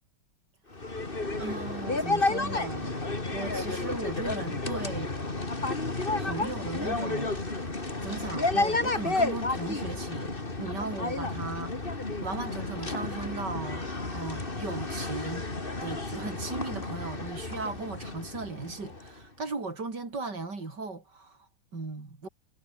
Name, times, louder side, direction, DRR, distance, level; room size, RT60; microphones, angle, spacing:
sound 1, 0.7-19.2, left 3 dB, 25° left, 3.0 m, -31 dB
voice 1, 1.4-3.0 3.3-5.1 6.2-10.3 10.6-11.8 12.2-15.5 15.8-22.3, right 3 dB, 55° right, 5.0 m, -37 dB
omnidirectional pair, 2.3 m